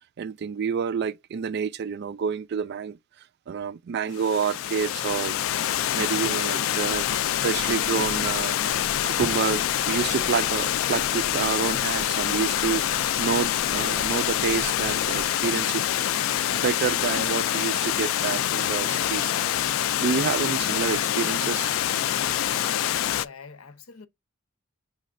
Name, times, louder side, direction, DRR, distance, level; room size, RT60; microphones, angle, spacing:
voice 1, 0.2-3.0 3.5-5.3 5.9-7.1 7.4-15.8 16.5-19.3 20.0-21.7, right 6 dB, 50° right, 0.3 m, -28 dB
Water, 4.1-23.3, left 11 dB, 70° left, 0.3 m, -26 dB
sound 1, 6.8-15.3, equal, 30° right, 1.6 m, -47 dB
voice 2, 22.2-24.1, left 4 dB, 90° left, 0.8 m, -45 dB
6.3 x 3.1 x 2.6 m
head